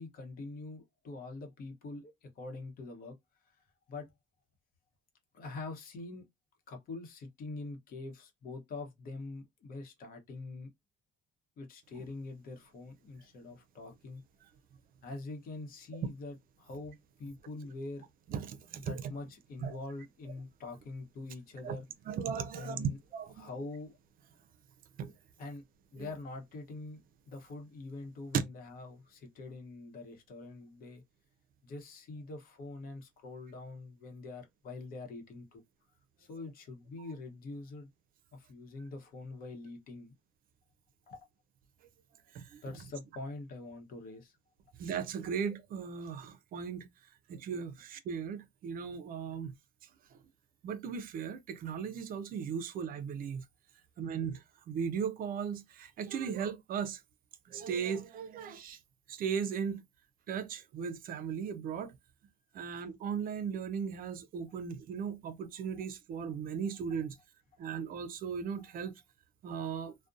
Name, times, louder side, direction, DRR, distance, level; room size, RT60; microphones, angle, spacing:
voice 1, 0.0-3.2 3.5-3.6 3.9-4.1 5.3-6.2 6.7-10.7 11.6-14.2 15.0-18.1 18.9-21.9 22.5-23.0 23.4-24.0 25.4-25.6 25.9-31.0 31.6-35.6 36.2-37.9 38.3-40.1 41.1-41.2 42.6-44.4, left 3 dB, 60° left, 0.9 m, -44 dB
voice 2, 18.3-18.9 19.6-19.8 21.6-21.8 22.1-23.5 25.0-25.1 42.3-42.6 44.8-46.9 47.3-49.5 50.6-53.4 54.0-54.4 54.7-57.0 57.5-58.8 59.1-59.8 60.3-61.9 62.5-67.2 67.6-68.9 69.4-69.9, right 7 dB, 55° right, 0.5 m, -37 dB
2.5 x 2.1 x 2.4 m
cardioid pair, 110°, 17 cm